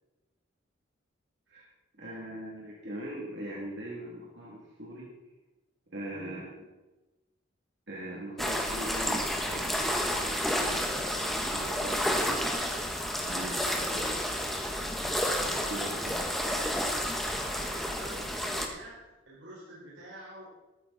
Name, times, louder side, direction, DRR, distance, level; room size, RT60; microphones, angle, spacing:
voice 1, 2.0-5.1 5.9-6.6 7.9-12.8 13.2-14.2 15.0-16.2, right 1 dB, 60° right, -4 dB, 2.6 m, -41 dB
voice 2, 6.1-6.4 14.5-14.6 15.2-17.0 17.5-20.5, right 1 dB, 75° right, -7 dB, 4.7 m, -48 dB
sound 1, 8.4-18.7, equal, ahead, 1.3 m, -30 dB
14.0 x 13.0 x 4.2 m, 1.1 s
head